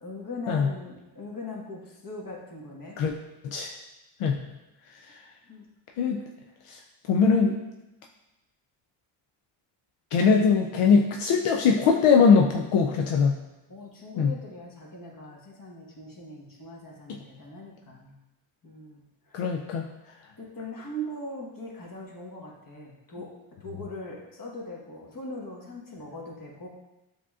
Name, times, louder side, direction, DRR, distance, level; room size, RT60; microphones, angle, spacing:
voice 1, 0.0-3.0 5.5-5.7 13.7-18.1 18.6-19.6 20.0-20.1 20.4-23.3 23.6-26.7, left 1 dB, 40° left, -2 dB, 1.3 m, -40 dB
voice 2, 7.1-7.5 10.1-13.4 14.2-14.3 19.3-19.8, left 5 dB, 80° left, 1 dB, 0.6 m, -21 dB
7.1 x 2.9 x 2.4 m, 0.99 s
cardioid pair, 75°, 50 cm